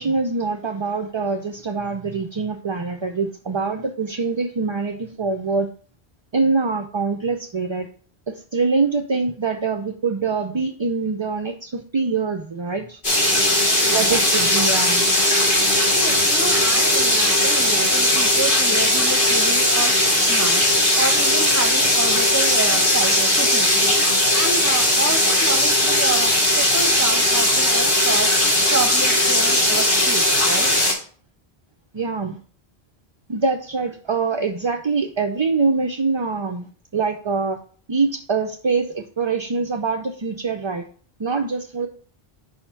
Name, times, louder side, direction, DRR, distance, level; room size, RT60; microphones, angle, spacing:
voice 1, 0.0-5.7 6.3-7.9 8.3-13.0 13.9-15.1 31.9-32.4 33.3-37.6 37.9-40.9 41.2-41.9, right 4 dB, 40° right, 3 dB, 0.4 m, -24 dB
sound 1, 13.0-30.9, left 1 dB, 55° left, 2.1 m, -18 dB
voice 2, 15.9-19.9 20.3-20.7 21.0-24.0 24.3-30.7, right 3 dB, 15° right, 6 dB, 0.8 m, -29 dB
5.2 x 4.5 x 5.7 m, 0.43 s
omnidirectional pair, 1.1 m